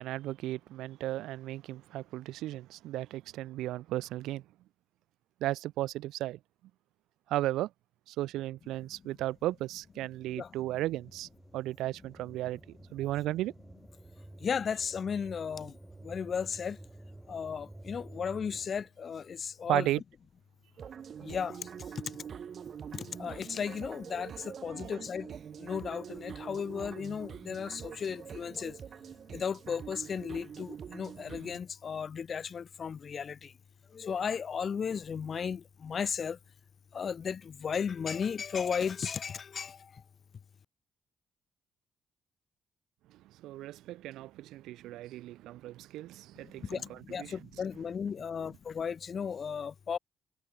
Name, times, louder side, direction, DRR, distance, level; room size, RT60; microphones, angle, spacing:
voice 1, 0.0-4.4 5.4-6.4 7.3-7.7 8.1-11.3 11.5-12.6 12.9-13.5 19.7-20.0 24.7-24.9 43.4-47.3, right 15 dB, 90° right, 1.3 m, -35 dB
sound 1, 9.8-18.9, right 2 dB, 15° right, 7.8 m, -52 dB
voice 2, 14.4-15.8 16.0-16.8 17.3-19.9 21.2-21.7 22.9-28.8 29.3-33.5 33.9-36.4 36.9-40.0 46.4-50.0, left 6 dB, 50° left, 1.8 m, -35 dB
sound 2, 20.8-31.6, right 7 dB, 55° right, 5.3 m, -45 dB
cardioid pair, 90°, 0 cm